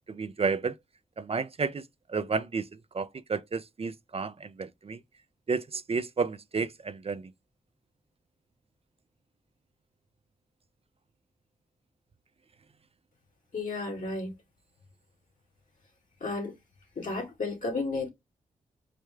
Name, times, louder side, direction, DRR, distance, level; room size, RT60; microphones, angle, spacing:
voice 1, 0.1-0.7 1.2-1.8 2.1-2.7 2.9-5.0 5.5-7.3, right 4 dB, 40° right, 0.5 m, -31 dB
voice 2, 13.5-14.3 16.2-16.5 17.0-18.1, left 3 dB, 65° left, 2.2 m, -32 dB
4.9 x 2.1 x 3.3 m
supercardioid pair, 40°, 15 cm